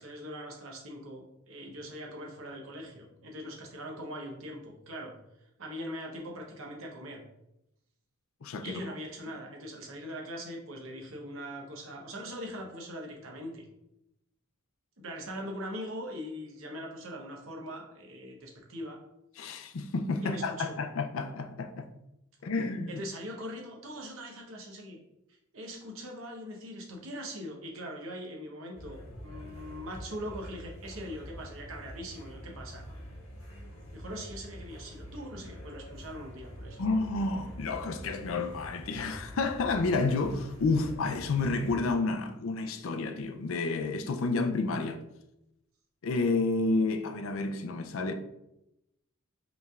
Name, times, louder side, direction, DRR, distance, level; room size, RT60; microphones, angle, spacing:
voice 1, 0.0-5.1 5.6-7.2 8.6-13.6 15.0-19.0 20.2-20.8 22.9-25.0 25.5-32.8 33.9-36.8, equal, 65° right, 0.9 m, -41 dB
voice 2, 8.4-8.8 19.4-21.9 22.4-23.0 36.8-45.0 46.0-48.1, left 3 dB, 65° left, 0.4 m, -30 dB
sound 1, 28.7-41.8, equal, 85° left, 1.5 m, -45 dB
5.0 x 3.2 x 2.4 m
head